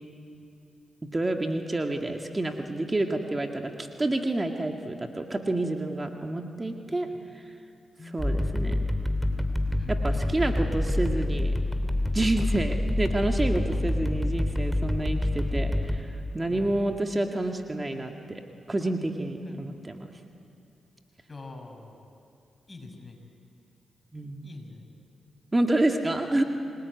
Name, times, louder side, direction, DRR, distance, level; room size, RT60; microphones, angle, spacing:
voice 1, 1.1-7.1 8.1-8.8 9.9-11.6 12.1-18.4 18.7-20.1 24.1-24.5 25.5-26.4, right 2 dB, 25° right, 3 dB, 2.0 m, -28 dB
voice 2, 8.0-8.5 9.8-10.2 12.3-12.5 13.7-13.9 16.5-16.8 19.5-19.6 21.3-22.1 22.7-23.2 24.4-24.9, left 3 dB, 35° left, 3 dB, 5.9 m, -44 dB
sound 1, 8.2-16.0, left 1 dB, ahead, 3.0 m, -27 dB
27.5 x 19.5 x 9.6 m, 2.6 s
supercardioid pair, 45°, 0 cm